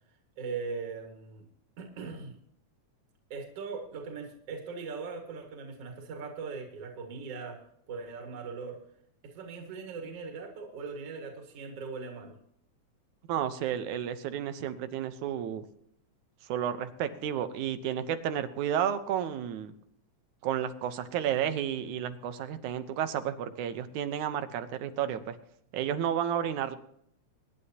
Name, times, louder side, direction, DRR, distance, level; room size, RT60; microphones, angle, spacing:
voice 1, 0.4-1.4 1.8-2.3 3.3-8.8 9.2-12.3, right 4 dB, 55° right, 2 dB, 2.8 m, -40 dB
voice 2, 13.3-15.7 16.5-19.7 20.4-25.4 25.7-26.8, right 9 dB, 90° right, 10 dB, 2.4 m, -32 dB
24.0 x 10.5 x 2.9 m, 0.71 s
omnidirectional pair, 3.3 m